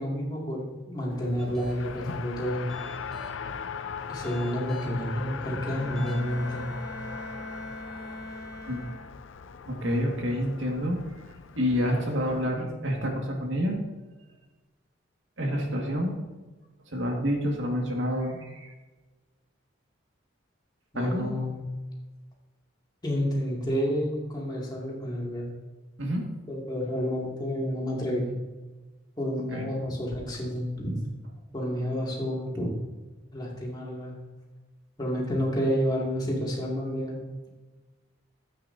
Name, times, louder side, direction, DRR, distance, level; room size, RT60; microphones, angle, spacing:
voice 1, 0.0-2.7 4.1-6.7 20.9-21.6 23.0-25.5 26.5-28.4 29.2-31.0 31.5-32.7 33.3-34.2 35.0-37.2, equal, 20° left, -3 dB, 2.5 m, -30 dB
Race car auto racing, 1.1-12.4, left 6 dB, 75° left, 0.5 m, -40 dB
sound 1, 1.4-2.0 2.5-3.5 4.0-5.0 5.5-5.6 6.0-6.5, equal, 5° left, 1.5 m, -49 dB
Bowed string instrument, 5.7-9.5, left 1 dB, 30° right, 2.7 m, -41 dB
voice 2, 9.7-11.0 11.6-13.8 15.4-16.2 16.9-18.7 20.9-21.2 26.0-26.2 29.5-29.6, equal, 75° right, 0 dB, 2.0 m, -28 dB
13.0 x 8.8 x 2.8 m, 1.2 s
head